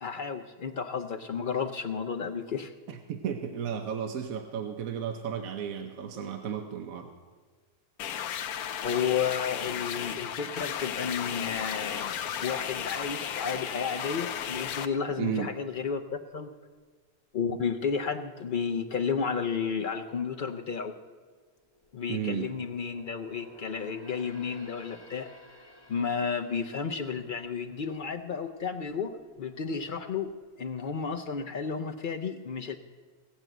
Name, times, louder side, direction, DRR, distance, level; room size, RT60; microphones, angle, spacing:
voice 1, 0.0-2.7 8.8-16.5 17.3-20.9 21.9-25.3 25.9-30.3 30.6-32.7, left 6 dB, 60° left, 5 dB, 0.5 m, -32 dB
voice 2, 2.9-7.1 15.2-15.5 22.1-22.5, right 8 dB, 70° right, 5 dB, 1.2 m, -33 dB
sound 1, 8.0-14.9, left 9 dB, 90° left, 1.1 m, -34 dB
sound 2, 11.3-15.5, equal, 45° right, 4.2 m, -54 dB
sound 3, 21.5-29.0 29.4-29.6 30.2-30.9 31.2-31.3, left 1 dB, 20° left, 1.2 m, -54 dB
17.5 x 6.1 x 7.8 m, 1.5 s
omnidirectional pair, 1.5 m